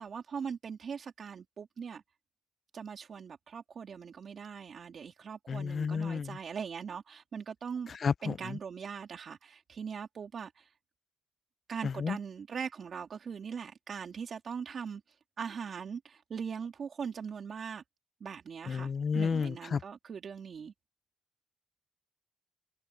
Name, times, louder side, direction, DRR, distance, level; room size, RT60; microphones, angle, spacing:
voice 1, 0.0-2.0 2.7-7.9 8.2-10.7 11.7-15.0 15.4-17.8 18.2-20.7, right 6 dB, 50° right, 2.8 m, -41 dB
voice 2, 5.5-6.4 7.9-8.6 11.8-12.2 18.7-19.8, left 6 dB, 45° left, 0.5 m, -32 dB
cardioid pair, 90°, 0 cm